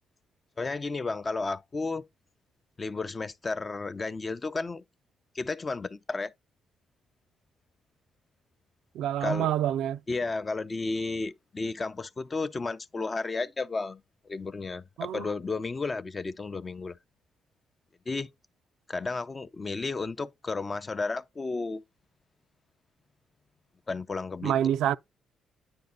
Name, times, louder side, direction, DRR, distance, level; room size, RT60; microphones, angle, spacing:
voice 1, 0.6-2.0 2.8-4.8 5.3-6.3 9.2-9.5 10.1-14.0 14.3-17.0 18.1-18.3 18.9-21.8 23.9-24.5, left 3 dB, 30° left, 0.6 m, -33 dB
voice 2, 8.9-10.0 15.0-15.2 24.4-25.0, right 11 dB, 85° right, 0.4 m, -27 dB
9.8 x 4.2 x 3.8 m
cardioid pair, 90°, 0 cm